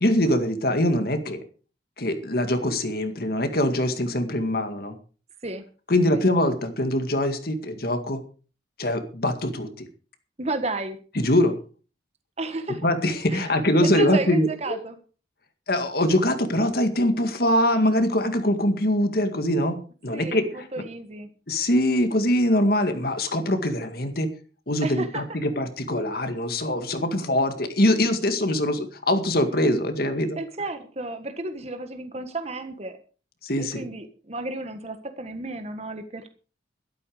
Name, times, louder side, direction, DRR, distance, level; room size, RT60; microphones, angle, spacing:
voice 1, 0.0-1.4 2.0-4.9 5.9-8.2 8.8-9.9 11.2-11.6 12.8-14.8 15.7-20.7 21.5-24.3 24.7-30.4 33.4-33.9, left 1 dB, 55° left, 7 dB, 2.0 m, -23 dB
voice 2, 10.4-11.0 12.4-12.8 13.3-15.0 20.1-21.3 24.8-25.2 30.4-33.0 33.6-36.3, right 2 dB, 35° right, 8 dB, 1.5 m, -32 dB
12.5 x 12.5 x 5.0 m, 0.38 s
head